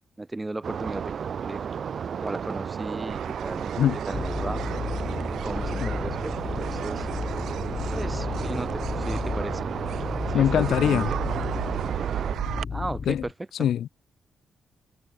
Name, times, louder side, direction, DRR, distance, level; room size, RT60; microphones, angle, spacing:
voice 1, 0.2-1.1 1.4-1.6 2.2-3.7 4.0-4.6 5.4-7.1 7.9-9.7 10.3-11.2 12.7-13.3 13.6-13.7, right 2 dB, 15° right, 1.1 m, -35 dB
sound 1, 0.6-12.4, right 7 dB, 45° right, 0.9 m, -33 dB
sound 2, 3.1-12.6, right 11 dB, 75° right, 0.8 m, -35 dB
sound 3, 4.1-13.3, left 5 dB, 35° left, 1.6 m, -33 dB
voice 2, 10.3-11.1 13.1-13.2 13.6-13.9, left 10 dB, 70° left, 0.8 m, -22 dB
cardioid pair, 150°, 0 cm